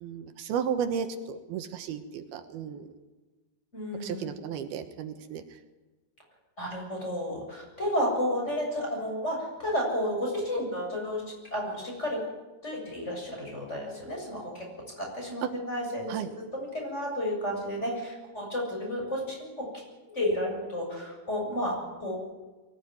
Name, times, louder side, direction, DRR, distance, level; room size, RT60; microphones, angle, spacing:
voice 1, 0.0-2.9 4.0-5.4 16.1-16.3, right 7 dB, 80° right, 8 dB, 3.1 m, -34 dB
voice 2, 3.7-4.3 6.6-11.2 11.5-12.2 12.6-14.7 15.0-19.7 20.1-22.2, equal, 15° left, 0 dB, 7.5 m, -32 dB
23.0 x 16.0 x 9.6 m, 1.2 s
omnidirectional pair, 4.4 m